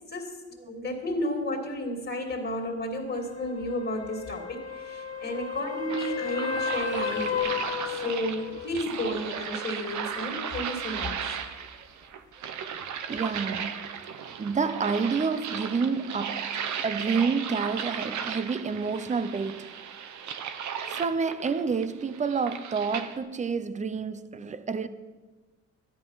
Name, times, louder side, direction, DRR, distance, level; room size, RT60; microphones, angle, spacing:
voice 1, 0.1-0.4 0.7-7.5 7.9-11.4, left 1 dB, 35° left, 2.7 m, -32 dB
sound 1, 3.1-8.7 12.8-12.9, left 6 dB, 50° left, 1.6 m, -33 dB
sound 2, 5.9-23.2, right 7 dB, 70° right, 1.1 m, -36 dB
voice 2, 13.1-14.0 14.4-19.8 20.9-24.9, right 5 dB, 25° right, 0.7 m, -29 dB
13.0 x 11.5 x 5.7 m
cardioid pair, 90°, 30 cm